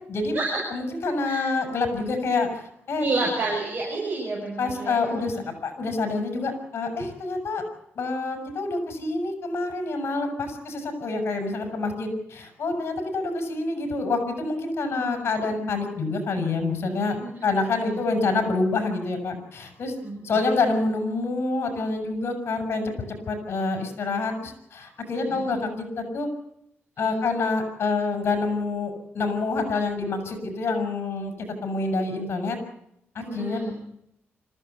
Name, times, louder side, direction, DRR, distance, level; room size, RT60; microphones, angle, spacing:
voice 1, 0.0-0.4 0.7-3.0 4.6-7.6 7.9-19.9 20.2-22.8 23.3-26.3 27.0-31.3 31.6-32.6 33.1-33.6, left 3 dB, 60° left, 6 dB, 6.3 m, -27 dB
voice 2, 3.0-5.4 14.9-15.6 17.2-17.4 17.8-18.0 20.0-20.2 25.3-25.6 27.0-27.1 33.3-33.7, right 3 dB, 40° right, -2 dB, 6.9 m, -30 dB
25.5 x 15.0 x 8.1 m, 0.77 s
wide cardioid pair, 130°, 5 cm